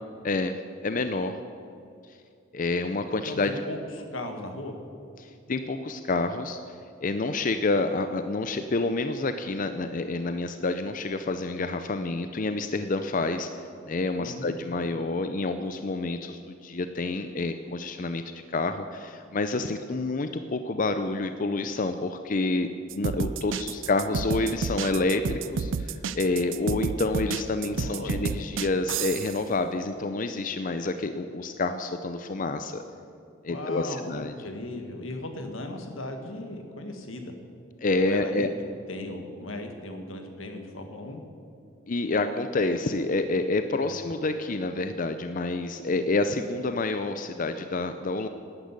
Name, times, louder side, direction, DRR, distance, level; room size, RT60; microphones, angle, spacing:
voice 1, 0.8-1.4 2.5-3.5 5.2-6.6 7.0-13.5 13.9-18.2 18.5-22.7 22.9-32.8 33.4-34.4 37.8-38.5 41.9-48.3, left 3 dB, 40° left, 8 dB, 0.5 m, -28 dB
voice 2, 3.3-4.8 14.2-14.5 27.7-28.4 33.5-37.3 38.0-38.5 38.9-41.2 43.8-44.0, left 1 dB, 85° left, 5 dB, 1.8 m, -37 dB
sound 1, 22.9-29.4, right 5 dB, 70° right, 0.5 m, -30 dB
11.5 x 10.5 x 8.2 m, 2.5 s
head